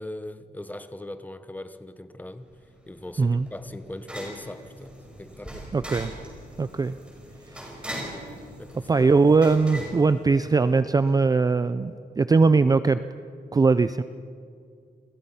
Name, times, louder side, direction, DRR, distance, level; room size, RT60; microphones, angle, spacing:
voice 1, 0.0-2.4 2.9-5.7 8.6-8.9, left 1 dB, 10° left, 11 dB, 1.0 m, -39 dB
sound 1, 2.5-10.8, equal, 5° right, 5.6 m, -41 dB
voice 2, 5.7-6.1 6.6-7.0 7.9-8.2 8.9-13.0 13.5-14.0, right 4 dB, 20° right, 12 dB, 0.5 m, -20 dB
29.5 x 22.0 x 5.7 m, 2.3 s
wide cardioid pair, 180°, 18 cm